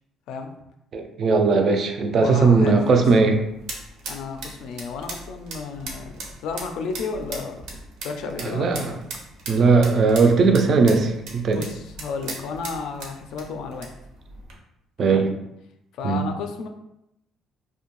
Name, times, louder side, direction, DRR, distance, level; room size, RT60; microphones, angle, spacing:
voice 1, 0.9-3.4 8.4-8.9 9.5-11.6 15.0-15.3 16.0-16.2, right 4 dB, 40° right, 5 dB, 0.3 m, -18 dB
voice 2, 2.1-3.0 4.1-7.6 8.0-8.8 11.5-13.9 15.1-15.3 15.9-16.7, left 5 dB, 70° left, 5 dB, 0.3 m, -32 dB
sound 1, 2.9-14.6, right 3 dB, 85° right, 0.6 m, -39 dB
2.5 x 2.2 x 3.0 m, 0.83 s
cardioid pair, 155°, 0 cm